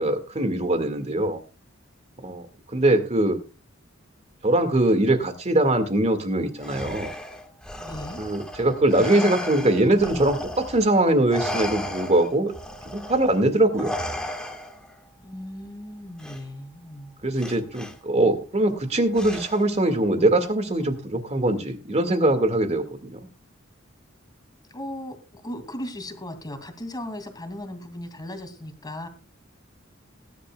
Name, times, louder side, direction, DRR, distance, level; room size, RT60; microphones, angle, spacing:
voice 1, 0.0-1.4 2.2-2.4 2.7-3.4 4.4-7.1 8.2-12.5 12.9-13.9 17.2-23.3, right 1 dB, 35° right, 8 dB, 2.0 m, -22 dB
Respiratory sounds, 6.6-10.9 11.3-14.9 16.2-16.4 17.4-17.9 19.1-19.8, left 1 dB, 5° left, 1.6 m, -34 dB
voice 2, 7.8-8.2 15.2-17.2 24.7-29.1, left 1 dB, 20° left, 7 dB, 2.4 m, -37 dB
19.0 x 11.0 x 2.3 m, 0.31 s
head